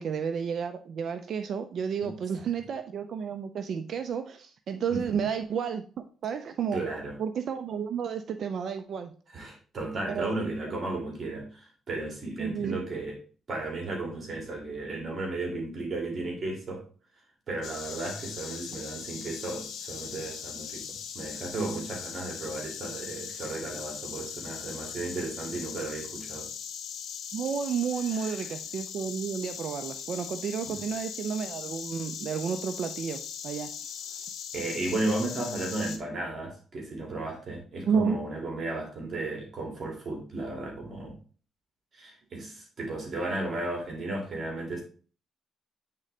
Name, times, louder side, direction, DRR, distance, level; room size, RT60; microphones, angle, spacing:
voice 1, 0.0-6.8 7.2-9.2 10.1-10.4 10.7-10.8 12.4-12.8 27.3-33.7 37.9-38.2, right 7 dB, 60° right, 8 dB, 0.5 m, -31 dB
voice 2, 4.9-5.3 6.7-7.2 9.3-13.2 13.5-16.9 17.5-20.9 21.1-26.5 28.1-28.4 30.6-30.8 34.5-41.1 41.9-44.8, right 2 dB, 45° right, 0 dB, 2.3 m, -34 dB
Insect, 17.6-36.0, left 8 dB, 75° left, 0.9 m, -40 dB
8.7 x 3.8 x 3.2 m, 0.39 s
cardioid pair, 90°, 0 cm